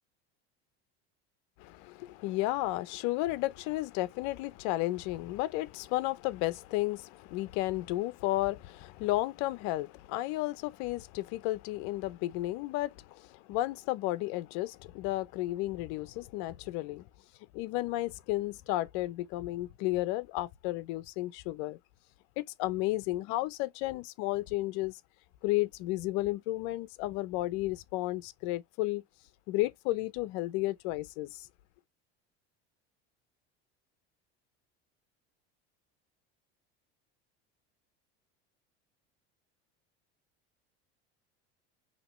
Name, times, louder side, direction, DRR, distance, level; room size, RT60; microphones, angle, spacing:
voice 1, 1.6-17.1 17.5-21.8 22.4-25.0 25.4-29.0 29.5-31.5, left 17 dB, 70° left, 0.8 m, -33 dB
5.8 x 3.0 x 3.1 m
supercardioid pair, 95°, 31 cm